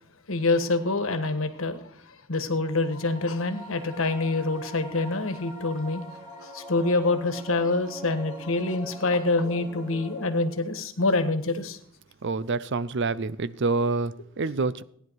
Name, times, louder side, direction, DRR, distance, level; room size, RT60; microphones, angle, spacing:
voice 1, 0.3-1.8 2.3-11.8, left 2 dB, 75° left, 1.4 m, -26 dB
sound 1, 2.7-10.9, left 1 dB, 20° right, 4.0 m, -43 dB
voice 2, 12.2-14.8, right 3 dB, 60° right, 0.6 m, -27 dB
16.0 x 10.0 x 4.6 m
head